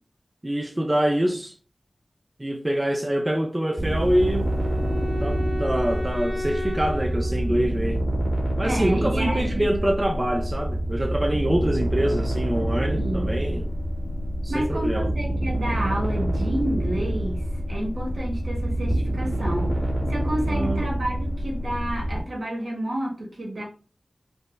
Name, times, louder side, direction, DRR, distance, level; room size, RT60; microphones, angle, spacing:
voice 1, 0.4-1.5 2.4-4.5 5.2-8.0 8.6-13.7 14.4-15.1 20.5-20.9, right 1 dB, 25° right, 0.5 m, -25 dB
Wind instrument woodwind instrument, 3.5-8.6, left 1 dB, 50° left, 0.8 m, -34 dB
sound 1, 3.8-22.2, right 1 dB, 40° right, 1.6 m, -27 dB
voice 2, 8.6-9.6 12.9-13.5 14.5-19.8 20.1-23.6, right 1 dB, 75° right, 1.4 m, -30 dB
5.2 x 2.1 x 3.2 m
wide cardioid pair, 50°, 0 cm